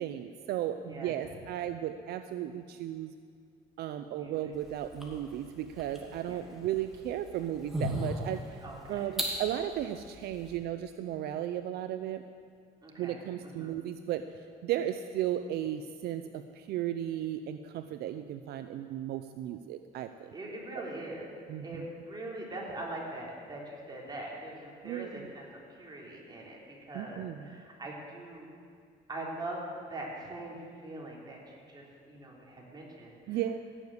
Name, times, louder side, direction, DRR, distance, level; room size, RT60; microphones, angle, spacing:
voice 1, 0.0-3.1 3.8-8.6 8.9-12.2 13.0-14.3 14.6-20.3 20.8-20.9 21.5-21.8 24.8-25.3 26.9-27.6 33.3-33.6, right 11 dB, 70° right, 9 dB, 0.6 m, -35 dB
sound 1, 4.5-10.6, equal, ahead, 2.5 m, -39 dB
voice 2, 8.6-9.0 12.8-13.8 20.3-21.3 21.6-25.4 25.8-26.6 26.9-28.5 29.1-33.6, right 1 dB, 25° right, -3 dB, 3.5 m, -42 dB
16.5 x 7.1 x 8.1 m, 2.2 s
cardioid pair, 110°, 17 cm